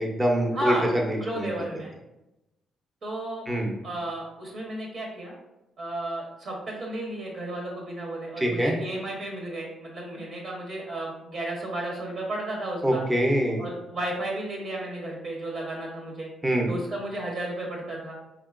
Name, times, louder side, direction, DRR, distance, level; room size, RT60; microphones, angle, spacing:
voice 1, 0.0-1.5 3.5-3.7 8.4-8.7 12.8-13.6 16.4-16.7, right 1 dB, 15° right, 1 dB, 0.7 m, -24 dB
voice 2, 0.5-0.8 1.2-1.9 3.0-3.4 3.8-5.3 5.8-13.0 13.6-16.3 16.7-18.2, right 1 dB, 60° right, -1 dB, 1.0 m, -33 dB
3.8 x 3.7 x 2.4 m, 0.93 s
cardioid pair, 90°, 0 cm